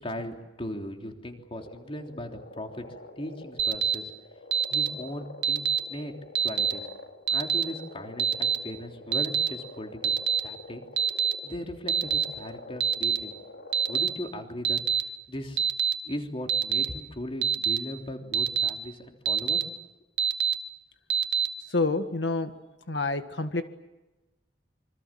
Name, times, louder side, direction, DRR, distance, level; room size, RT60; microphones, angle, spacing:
voice 1, 0.0-2.8 3.2-4.1 4.7-6.1 6.4-6.9 7.3-10.8 11.4-13.3 13.9-15.6 16.0-19.7, left 1 dB, 30° left, 3 dB, 3.4 m, -38 dB
sound 1, 1.6-14.2, left 2 dB, 70° left, 3.5 m, -46 dB
Alarm, 3.6-3.9 4.5-4.9 5.4-5.8 6.3-6.7 7.3-7.6 8.2-8.5 9.1-9.5 10.0-10.4 11.0-11.3 11.9-12.2 12.8-13.2 13.7-14.1 14.6-15.0 15.6-15.9 16.5-16.8 17.4-17.8 18.3-18.7 19.2-19.6 20.2-20.5 21.1-21.5, right 7 dB, 70° right, 1.8 m, -24 dB
voice 2, 21.7-22.5 22.9-23.6, left 3 dB, 90° left, 8 dB, 1.7 m, -27 dB
27.5 x 25.5 x 7.6 m, 1.1 s
head